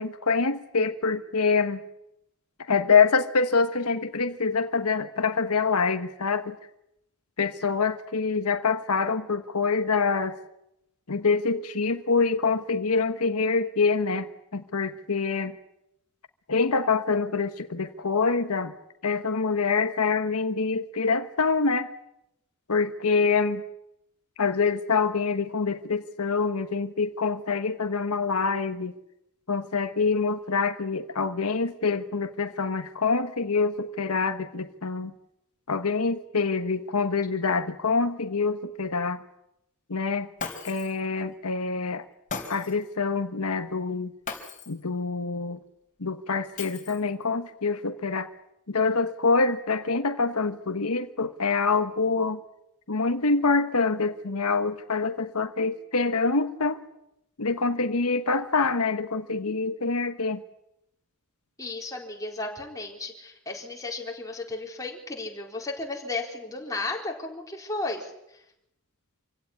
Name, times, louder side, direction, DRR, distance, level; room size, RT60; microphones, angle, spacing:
voice 1, 0.0-1.8 2.7-6.6 7.4-10.4 11.1-15.5 16.5-18.7 19.0-21.9 22.7-23.6 24.4-28.9 29.5-35.1 35.7-39.2 39.9-40.3 40.6-42.0 42.5-44.1 44.7-45.6 46.0-48.3 48.7-52.4 52.9-56.8 57.4-60.4, left 4 dB, 85° left, 8 dB, 1.3 m, -25 dB
Shatter, 40.4-41.0 42.3-42.9 44.3-44.8 46.6-47.2, left 5 dB, 35° left, 3.6 m, -37 dB
voice 2, 61.6-68.4, left 2 dB, 15° left, 0 dB, 4.3 m, -34 dB
26.5 x 16.5 x 9.7 m, 0.83 s
head